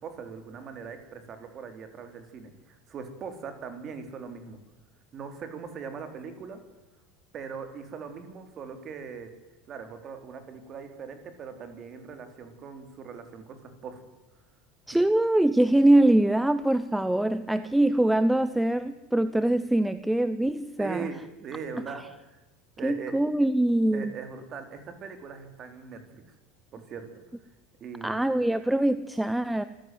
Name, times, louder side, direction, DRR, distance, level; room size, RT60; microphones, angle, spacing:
voice 1, 0.0-4.6 5.1-6.6 7.3-9.3 9.7-14.0 20.8-22.4 22.8-23.1 23.9-26.2 26.7-27.1 27.8-28.3, right 6 dB, 30° right, 8 dB, 3.8 m, -40 dB
voice 2, 14.9-21.1 22.8-24.1 28.0-29.6, right 1 dB, 5° right, 13 dB, 0.7 m, -23 dB
25.5 x 15.5 x 9.4 m, 1.1 s
cardioid pair, 165°, 0 cm